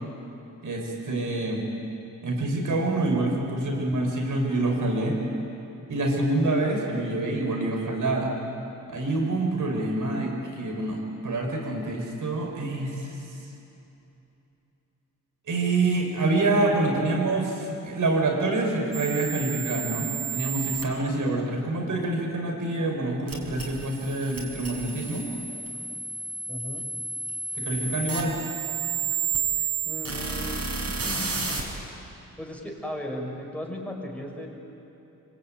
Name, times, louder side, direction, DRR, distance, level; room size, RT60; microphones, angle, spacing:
voice 1, 0.6-1.6 2.2-5.2 5.9-8.3 8.9-13.2 15.5-25.3 27.5-28.3, right 2 dB, 70° right, 1 dB, 6.3 m, -26 dB
sound 1, 18.9-20.8 23.3-31.6, right 6 dB, 50° right, 6.2 m, -31 dB
voice 2, 26.5-26.8 29.8-30.6 30.8-31.5 32.4-34.5, left 1 dB, 5° left, -1 dB, 6.7 m, -36 dB
25.0 x 24.5 x 9.6 m, 2.9 s
cardioid pair, 80°, 32 cm